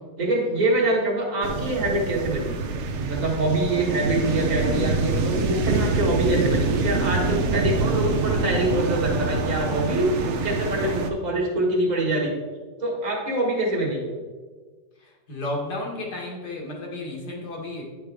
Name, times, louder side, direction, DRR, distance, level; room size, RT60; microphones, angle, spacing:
voice 1, 0.2-2.6 3.0-12.3 12.8-14.1, right 1 dB, 25° right, -2 dB, 1.4 m, -25 dB
sound 1, 1.4-11.1, right 3 dB, 60° right, 0.7 m, -25 dB
voice 2, 15.3-17.8, left 2 dB, 65° left, -2 dB, 2.0 m, -32 dB
9.8 x 4.8 x 3.4 m, 1.4 s
omnidirectional pair, 1.9 m